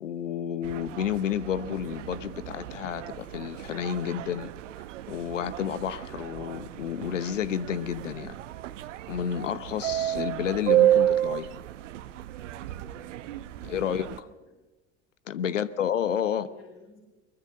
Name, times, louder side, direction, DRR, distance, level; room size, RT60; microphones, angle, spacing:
voice 1, 0.0-4.5 5.1-8.4 9.1-11.5 13.6-14.1 15.3-16.5, left 9 dB, 90° left, 16 dB, 0.9 m, -30 dB
sound 1, 0.6-14.2, right 12 dB, 80° right, 1.0 m, -31 dB
voice 2, 13.5-14.6 15.4-15.8 16.2-17.0, left 5 dB, 45° left, 2 dB, 4.7 m, -56 dB
22.5 x 21.0 x 6.7 m, 1.2 s
hypercardioid pair, 70°, 36 cm